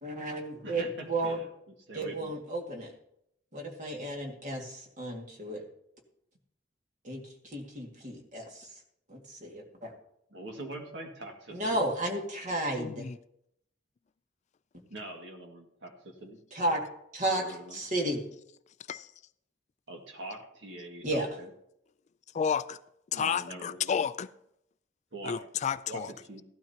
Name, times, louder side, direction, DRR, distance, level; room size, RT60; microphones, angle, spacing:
voice 1, 0.0-1.4 1.9-2.9 3.5-5.6 7.0-7.2 7.5-8.7 9.1-9.9 11.5-13.1 16.5-16.8 17.1-17.4 17.7-18.2 21.0-21.3, right 1 dB, 40° right, 2.0 m, -33 dB
voice 2, 0.6-2.4 10.3-11.8 14.9-16.4 17.3-17.8 19.9-21.5 23.1-23.9 25.1-25.3 25.9-26.4, right 2 dB, 65° right, 2.0 m, -44 dB
voice 3, 12.8-13.2 18.9-19.1 22.3-22.8 23.1-24.3 25.2-26.1, left 7 dB, 40° left, 0.3 m, -31 dB
16.0 x 12.0 x 2.9 m
head